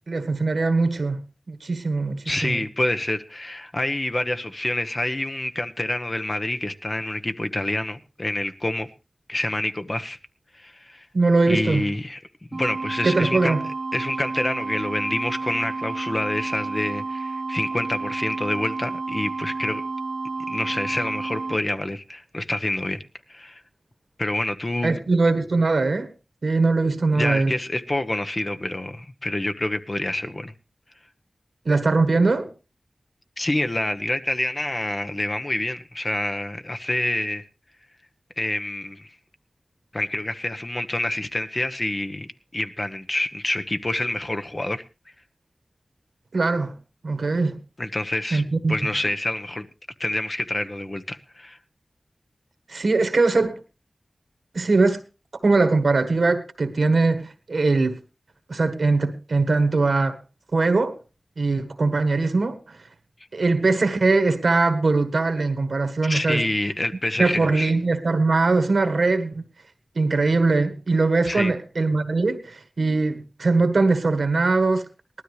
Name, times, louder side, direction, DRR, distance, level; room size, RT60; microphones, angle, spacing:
voice 1, 0.1-2.6 11.1-11.9 13.0-13.6 24.8-26.1 26.4-27.5 31.6-32.5 46.3-46.7 47.0-47.6 48.3-48.8 52.7-53.6 54.5-55.0 55.4-58.0 58.5-60.2 60.5-61.0 61.4-62.8 63.3-66.4 67.2-69.4 69.9-74.9, right 3 dB, 80° right, 1.5 m, -21 dB
voice 2, 2.2-8.9 9.3-10.2 10.5-11.1 11.4-12.2 12.5-13.6 13.9-19.8 20.5-23.0 23.3-23.6 24.2-25.0 27.1-30.5 33.4-37.4 38.4-39.1 39.9-42.3 42.5-44.8 47.8-48.4 48.7-49.7 50.0-51.6 66.0-67.7 71.2-71.5, left 1 dB, 40° left, 1.1 m, -27 dB
sound 1, 12.5-21.6, right 3 dB, 60° right, 1.0 m, -31 dB
18.5 x 12.5 x 3.3 m
cardioid pair, 40°, 0 cm